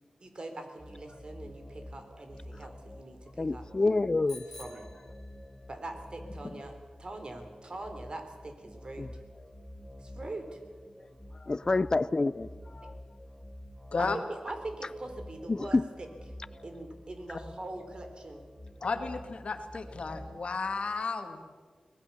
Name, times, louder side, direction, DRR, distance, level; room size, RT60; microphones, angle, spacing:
voice 1, 0.2-3.6 4.6-4.8 5.7-6.7 7.0-9.1 10.0-10.6 14.0-16.1 16.6-18.4, right 2 dB, 45° right, 6 dB, 3.6 m, -42 dB
sound 1, 0.8-20.4, left 1 dB, 10° right, 2.8 m, -49 dB
voice 2, 3.4-4.4 9.0-9.1 11.5-12.5 12.8-12.9 15.5-15.8, left 3 dB, 35° left, 18 dB, 0.6 m, -27 dB
Bicycle bell, 4.3-5.8, left 2 dB, 15° left, 4.5 m, -51 dB
voice 3, 18.8-21.4, left 4 dB, 70° left, 6 dB, 2.0 m, -33 dB
24.0 x 19.0 x 7.0 m, 1.5 s
wide cardioid pair, 85°, 2 cm